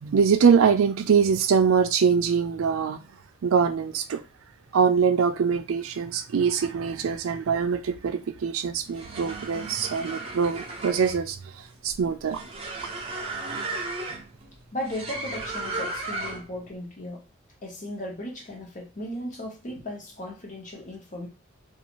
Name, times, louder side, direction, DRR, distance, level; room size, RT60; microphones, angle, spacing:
voice 1, 0.0-3.0 3.4-4.2 4.7-12.4 13.5-13.6, right 6 dB, 80° right, 0.4 m, -23 dB
sound 1, 8.8-16.6, right 2 dB, 25° right, 0.6 m, -35 dB
voice 2, 14.7-17.3 17.6-21.3, left 1 dB, 35° left, 0.8 m, -36 dB
2.5 x 2.4 x 2.9 m
head